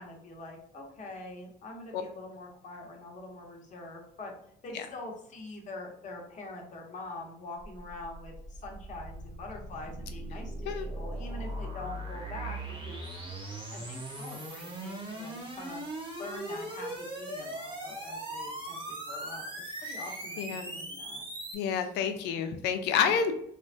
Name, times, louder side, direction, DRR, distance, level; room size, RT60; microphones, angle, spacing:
voice 1, 0.0-4.3 4.6-13.0 13.7-15.8 16.2-19.4 19.8-21.2 21.7-21.9 23.0-23.2, left 2 dB, 45° left, 0 dB, 0.9 m, -44 dB
sound 1, 7.6-21.6, right 1 dB, 30° right, 0.9 m, -39 dB
voice 2, 20.4-20.8 21.5-23.3, left 7 dB, 90° left, 7 dB, 0.5 m, -29 dB
3.2 x 2.2 x 2.5 m, 0.72 s
cardioid pair, 110°, 17 cm